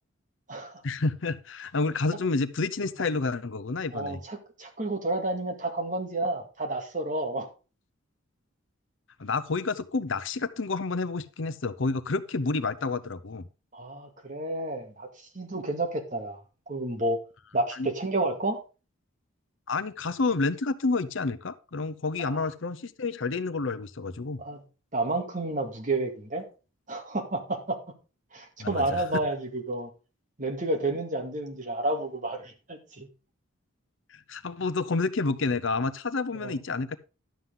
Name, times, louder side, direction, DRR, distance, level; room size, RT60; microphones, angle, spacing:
voice 1, 0.8-4.2 9.2-13.4 17.8-17.9 19.7-24.4 28.6-29.0 34.3-37.0, left 3 dB, 65° left, 13 dB, 0.7 m, -29 dB
voice 2, 3.9-7.5 13.7-16.4 16.7-17.2 17.5-18.6 22.2-22.5 24.4-24.6 24.9-26.4 26.9-27.8 28.3-29.9 30.4-33.1 36.4-36.6, right 2 dB, 40° right, 3 dB, 2.1 m, -30 dB
11.5 x 7.6 x 3.7 m, 0.31 s
head